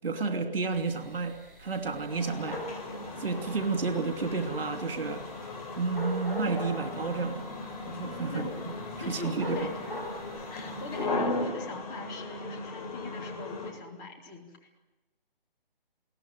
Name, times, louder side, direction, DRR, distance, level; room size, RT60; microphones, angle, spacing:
voice 1, 0.0-2.6 3.2-5.2 5.8-7.4 8.0-8.5 9.1-9.6, right 4 dB, 70° right, 6 dB, 2.9 m, -31 dB
sound 1, 0.7-11.1, left 1 dB, ahead, 5.6 m, -43 dB
sound 2, 2.1-13.7, left 2 dB, 40° left, 5.4 m, -37 dB
voice 2, 8.3-8.7 9.0-10.0 10.5-14.8, left 4 dB, 20° left, 0 dB, 3.0 m, -42 dB
22.0 x 19.0 x 9.1 m, 1.0 s
figure-of-eight pair, 160°, 30 cm